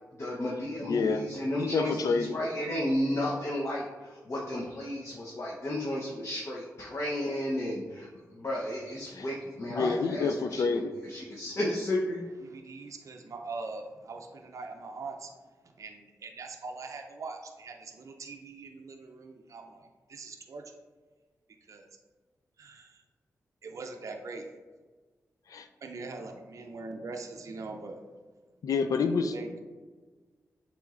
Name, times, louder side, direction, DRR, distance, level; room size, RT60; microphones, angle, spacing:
voice 1, 0.2-12.2, left 1 dB, 50° left, -4 dB, 0.8 m, -33 dB
voice 2, 0.9-1.2 1.6-2.3 9.2-9.3 9.7-10.9 25.5-25.7 28.6-29.3, left 4 dB, 70° left, 8 dB, 0.4 m, -28 dB
voice 3, 12.4-15.3 15.8-20.6 21.7-21.9 22.6-23.0 23.6-24.5 25.8-28.0 29.3-29.5, right 3 dB, 60° right, 3 dB, 0.4 m, -42 dB
6.9 x 3.0 x 2.4 m, 1.4 s
cardioid pair, 70°, 6 cm